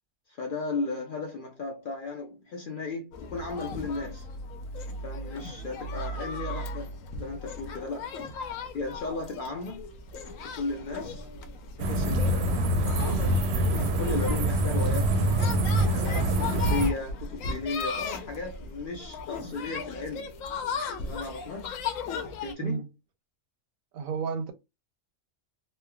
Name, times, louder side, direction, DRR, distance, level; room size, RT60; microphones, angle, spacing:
voice 1, 0.3-4.3 5.0-8.1 8.7-9.8 10.4-11.3 11.8-15.2 15.9-20.3 21.0-21.8 22.4-22.8, left 3 dB, 65° left, 0.5 m, -35 dB
sound 1, 3.1-22.5, left 3 dB, 85° left, 1.0 m, -37 dB
sound 2, 11.8-16.9, right 1 dB, 65° right, 0.8 m, -25 dB
voice 2, 22.6-22.9 23.9-24.5, right 6 dB, 90° right, 1.1 m, -31 dB
3.2 x 2.1 x 2.2 m
omnidirectional pair, 1.4 m